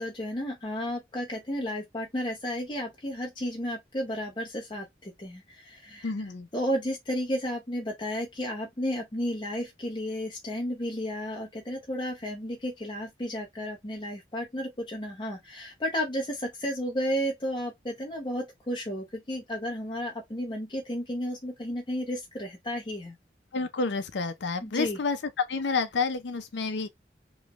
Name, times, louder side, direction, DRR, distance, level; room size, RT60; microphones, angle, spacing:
voice 1, 0.0-23.1 24.6-25.0, equal, 25° left, 0.8 m, -33 dB
voice 2, 6.0-6.5 23.5-26.9, left 4 dB, 80° left, 0.6 m, -29 dB
3.2 x 3.0 x 2.4 m
head